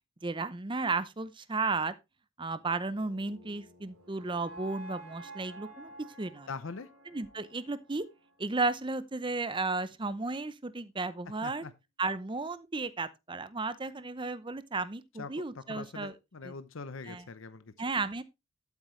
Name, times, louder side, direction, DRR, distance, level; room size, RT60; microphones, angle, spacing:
voice 1, 0.2-1.9 2.4-5.9 6.2-6.5 7.1-8.0 8.4-11.6 12.0-16.1 17.1-17.2 17.8-18.2, right 3 dB, 20° right, 0.6 m, -34 dB
sound 1, 2.8-9.0, right 1 dB, 80° right, 3.4 m, -51 dB
voice 2, 6.5-6.9 11.4-11.7 15.2-17.7, left 4 dB, 60° left, 0.7 m, -43 dB
12.0 x 8.3 x 3.2 m
head